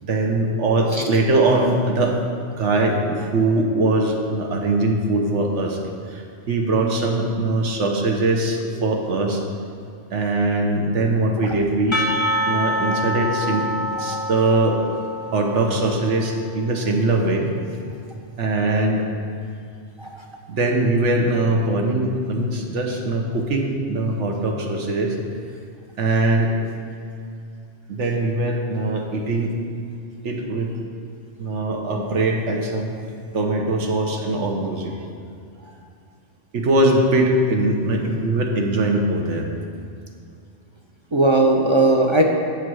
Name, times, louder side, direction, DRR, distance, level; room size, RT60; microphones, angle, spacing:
voice 1, 0.0-2.2 2.6-5.8 6.1-9.4 10.1-12.0 12.5-13.7 14.0-14.8 15.3-17.5 18.4-19.0 20.5-25.2 26.0-26.5 27.9-29.5 30.2-30.7 31.4-32.9 33.3-35.1 35.6-35.7 36.5-39.5, right 2 dB, 80° right, 1 dB, 1.2 m, -21 dB
Percussion / Church bell, 11.9-16.5, equal, 30° left, 0.6 m, -26 dB
voice 2, 41.1-42.2, right 2 dB, 40° right, 1 dB, 0.4 m, -18 dB
8.3 x 4.7 x 6.2 m, 2.4 s
omnidirectional pair, 1.2 m